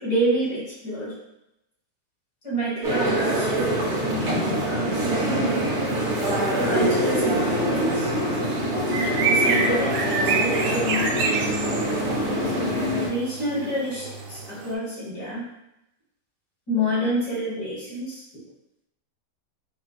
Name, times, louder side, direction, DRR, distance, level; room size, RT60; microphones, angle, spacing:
voice 1, 0.0-1.1 2.4-5.2 6.5-8.1 9.3-11.5 13.1-15.5 16.7-18.2, right 1 dB, 70° left, -10 dB, 2.1 m, -28 dB
sound 1, 2.8-13.1, right 1 dB, 50° right, 1.1 m, -24 dB
sound 2, 5.5-14.7, right 4 dB, 85° right, 1.2 m, -30 dB
5.7 x 2.3 x 2.3 m, 0.86 s
omnidirectional pair, 1.8 m